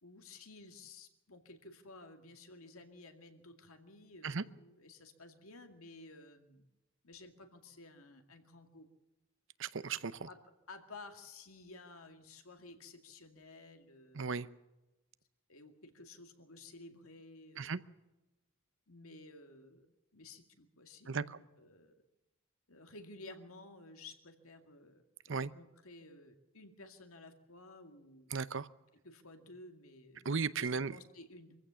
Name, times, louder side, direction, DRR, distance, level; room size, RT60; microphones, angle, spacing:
voice 1, 0.0-6.6 7.0-8.9 10.0-10.4 10.7-14.5 15.5-17.8 18.9-19.9 20.1-21.9 22.7-25.0 25.3-28.4 29.0-30.3 30.6-31.6, left 2 dB, 80° left, 6 dB, 2.3 m, -54 dB
voice 2, 9.6-10.3 14.1-14.5 17.6-17.8 21.1-21.4 25.3-25.5 28.3-28.7 30.2-31.0, right 5 dB, 60° right, 16 dB, 0.7 m, -36 dB
24.0 x 15.5 x 7.0 m, 1.0 s
head